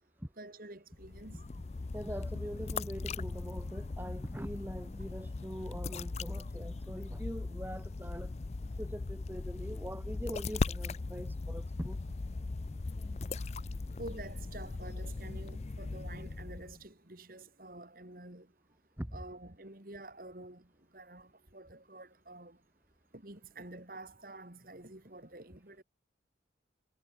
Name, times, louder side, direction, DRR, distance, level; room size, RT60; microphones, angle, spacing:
voice 1, 0.4-1.4 7.1-7.2 14.0-18.5 19.1-20.6 20.9-22.6 23.1-25.8, right 2 dB, 50° right, 2.5 m, -48 dB
sound 1, 0.9-16.8, left 3 dB, 35° left, 0.4 m, -39 dB
voice 2, 1.9-8.3 8.8-12.0 13.2-13.3 19.0-19.2, equal, 10° right, 2.1 m, -43 dB
head